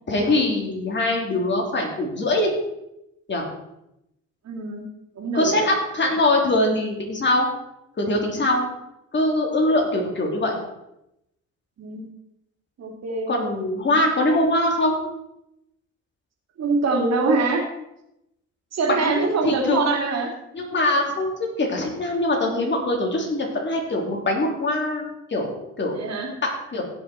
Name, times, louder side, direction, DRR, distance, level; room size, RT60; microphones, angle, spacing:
voice 1, 0.1-2.5 3.3-3.4 5.3-7.5 8.0-8.6 9.1-10.6 13.3-15.0 18.9-19.8 20.5-26.0 26.4-26.8, left 1 dB, 35° left, 0 dB, 3.4 m, -23 dB
voice 2, 4.4-4.9 5.1-5.6 11.8-12.1 12.8-13.4 16.6-17.6 18.7-20.3 25.9-26.3, right 3 dB, 60° right, 1 dB, 3.1 m, -24 dB
16.5 x 6.4 x 4.5 m, 0.84 s
cardioid pair, 90°, 30 cm